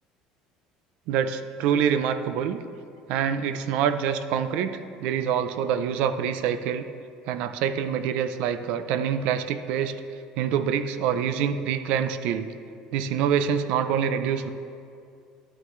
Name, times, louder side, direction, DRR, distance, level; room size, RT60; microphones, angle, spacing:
voice 1, 1.1-2.6 3.1-6.8 7.3-10.0 10.4-12.5 12.9-14.5, right 8 dB, 60° right, 11 dB, 0.5 m, -26 dB
11.0 x 9.4 x 3.2 m, 2.4 s
cardioid pair, 175°, 2 cm